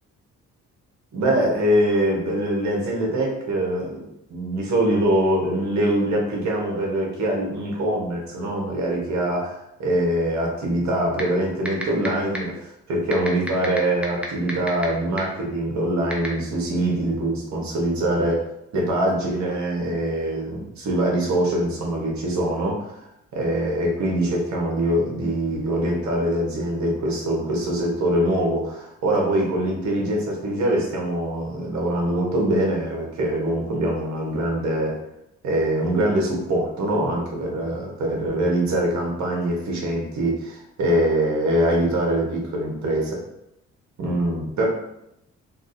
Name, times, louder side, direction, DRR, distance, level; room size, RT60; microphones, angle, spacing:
voice 1, 1.1-18.4 18.7-23.1 23.3-34.9 35.4-43.2 44.0-44.7, right 1 dB, 70° right, -1 dB, 1.1 m, -23 dB
sound 1, 11.2-11.3 11.7-12.1 12.3-12.4 13.1-14.8 15.2-15.3 16.1-16.3, equal, 5° right, 0.6 m, -27 dB
3.5 x 2.4 x 2.6 m, 0.80 s
cardioid pair, 90°, 30 cm